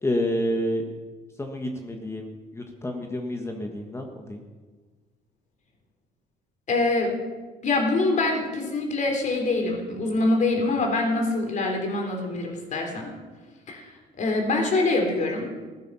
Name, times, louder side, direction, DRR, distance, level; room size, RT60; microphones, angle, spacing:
voice 1, 0.0-0.9 1.4-4.4, equal, 15° left, 3 dB, 1.5 m, -29 dB
voice 2, 6.7-7.2 7.6-13.1 13.7-15.5, left 2 dB, 45° left, 1 dB, 3.9 m, -25 dB
16.0 x 11.5 x 5.7 m, 1.4 s
cardioid pair, 110°, 17 cm